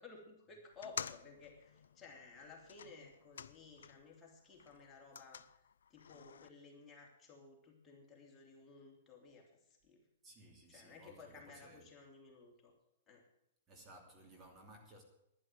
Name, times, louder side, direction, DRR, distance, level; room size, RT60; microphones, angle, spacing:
voice 1, 0.0-5.6 5.9-10.0 10.7-12.7 13.1-13.2, left 4 dB, 20° left, 3.1 m, -57 dB
sound 1, 0.7-4.2 4.5-6.5, left 7 dB, 75° left, 0.5 m, -50 dB
voice 2, 10.2-11.9 13.7-15.0, right 1 dB, 20° right, 3.0 m, -58 dB
11.0 x 10.5 x 7.8 m
hypercardioid pair, 120°, 0 cm